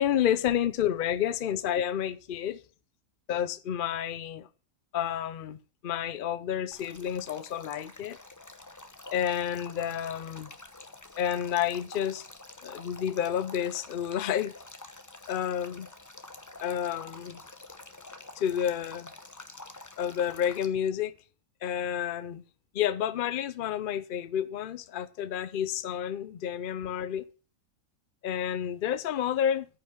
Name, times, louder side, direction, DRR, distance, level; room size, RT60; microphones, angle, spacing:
voice 1, 0.0-2.6 3.3-4.5 4.9-5.6 5.8-8.2 9.1-10.5 11.2-12.3 12.6-14.6 15.3-15.9 16.6-17.4 18.4-19.1 20.0-21.1 21.6-22.4 22.7-27.3 28.2-29.7, left 9 dB, 65° left, 0.5 m, -30 dB
Male speech man speaking / Stream / Trickle dribble, 6.7-20.7, left 2 dB, 15° left, 0.7 m, -48 dB
9.3 x 5.6 x 7.6 m
omnidirectional pair, 1.5 m